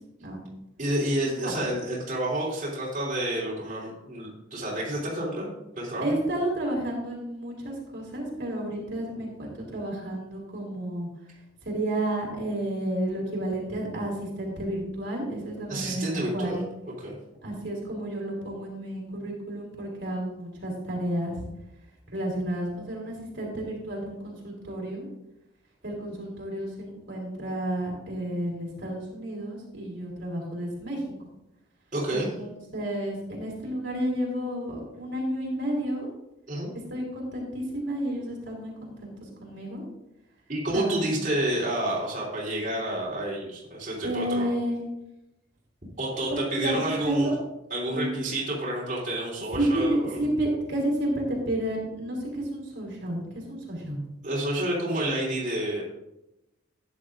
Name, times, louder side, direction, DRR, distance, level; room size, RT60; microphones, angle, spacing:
voice 1, 0.8-6.2 15.7-16.6 17.0-17.1 31.9-32.3 36.5-36.7 40.5-44.5 46.0-47.3 47.7-50.2 54.2-55.8, right 1 dB, 40° right, -6 dB, 3.4 m, -29 dB
voice 2, 6.0-11.1 11.6-16.6 17.4-21.3 22.1-25.1 25.8-31.0 32.1-36.1 36.9-39.8 40.7-41.1 44.0-44.8 46.3-47.3 47.9-48.2 49.5-54.0, right 1 dB, 60° right, -2 dB, 3.4 m, -31 dB
14.5 x 10.0 x 2.6 m, 0.91 s
head